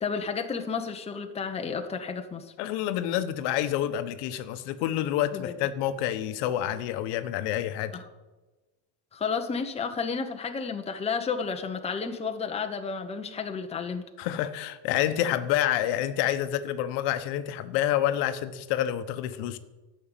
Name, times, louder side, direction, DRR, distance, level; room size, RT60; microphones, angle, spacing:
voice 1, 0.0-2.5 5.3-5.5 7.9-8.0 9.1-14.1, left 5 dB, 15° left, 5 dB, 0.9 m, -32 dB
voice 2, 2.6-8.0 14.2-19.6, left 12 dB, 75° left, 11 dB, 1.1 m, -28 dB
12.5 x 6.5 x 8.9 m, 1.2 s
cardioid pair, 155°, 42 cm